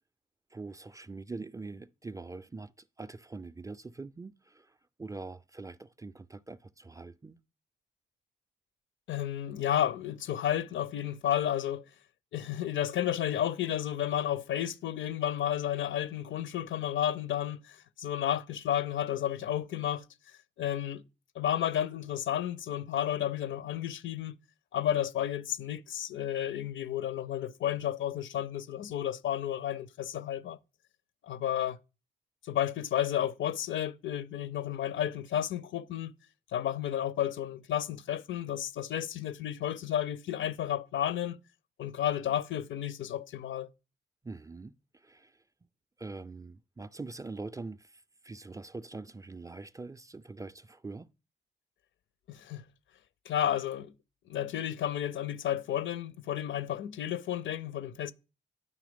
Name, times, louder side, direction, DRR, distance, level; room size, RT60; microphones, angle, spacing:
voice 1, 0.5-7.4 44.2-45.4 46.0-51.1, right 3 dB, 15° right, 0.3 m, -44 dB
voice 2, 9.1-11.8 12.3-20.0 20.6-21.0 21.4-24.3 24.7-30.6 31.2-31.8 32.4-36.1 36.5-41.4 41.8-43.7 52.3-52.6 53.3-53.9 54.3-58.1, left 11 dB, 75° left, 0.5 m, -32 dB
9.3 x 3.1 x 5.1 m
cardioid pair, 70°, 20 cm